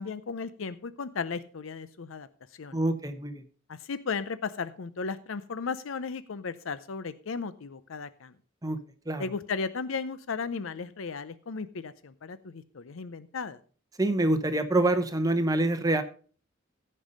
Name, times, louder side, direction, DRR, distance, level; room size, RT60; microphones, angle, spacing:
voice 1, 0.0-2.3 2.5-2.8 3.7-8.3 9.2-13.6, left 5 dB, 85° left, 13 dB, 0.6 m, -35 dB
voice 2, 2.7-3.4 8.6-8.8 9.1-9.2 14.0-16.0, right 2 dB, 20° right, 9 dB, 0.8 m, -26 dB
15.5 x 5.4 x 5.3 m, 0.40 s
head